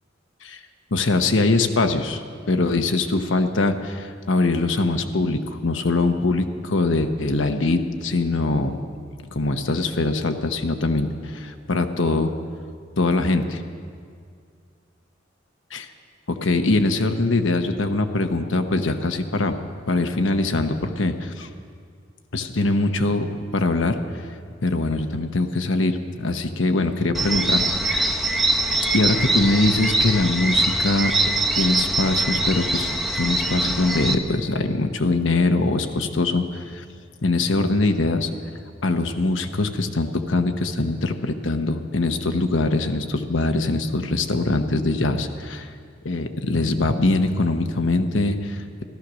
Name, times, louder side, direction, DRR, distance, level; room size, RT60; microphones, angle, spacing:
voice 1, 0.9-2.2 2.5-8.8 9.3-12.3 13.0-13.6 15.7-15.9 16.3-19.6 19.9-21.5 22.3-24.0 24.6-28.1 28.9-36.8 37.2-38.3 38.8-45.7 46.0-48.8, left 2 dB, 70° left, 7 dB, 1.0 m, -22 dB
sound 1, 27.1-34.1, right 2 dB, ahead, 0.9 m, -23 dB
14.5 x 13.0 x 6.2 m, 2.2 s
head